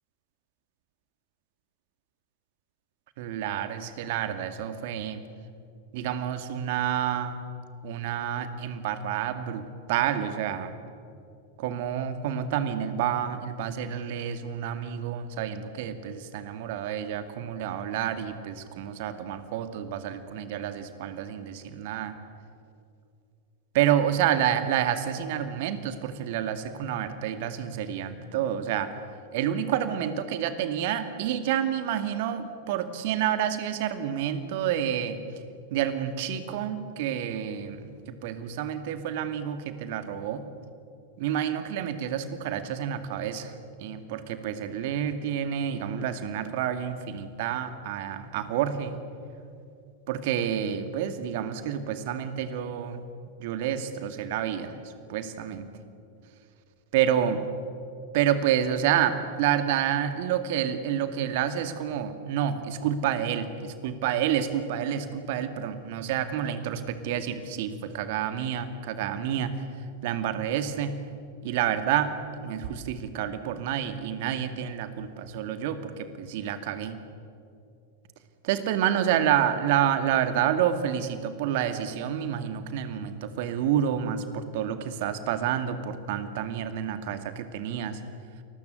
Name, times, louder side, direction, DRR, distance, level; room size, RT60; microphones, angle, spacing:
voice 1, 3.2-5.2 5.9-7.4 7.8-10.7 11.6-22.1 23.7-28.9 29.3-35.2 35.7-40.4 41.2-43.5 43.8-49.0 50.1-53.0 53.4-55.7 56.9-57.5 58.1-69.5 70.0-71.0 71.4-72.1 72.4-77.0 78.4-88.0, right 9 dB, 50° right, 10 dB, 2.2 m, -29 dB
29.0 x 20.5 x 8.2 m, 2.5 s
figure-of-eight pair, 90°, 0 cm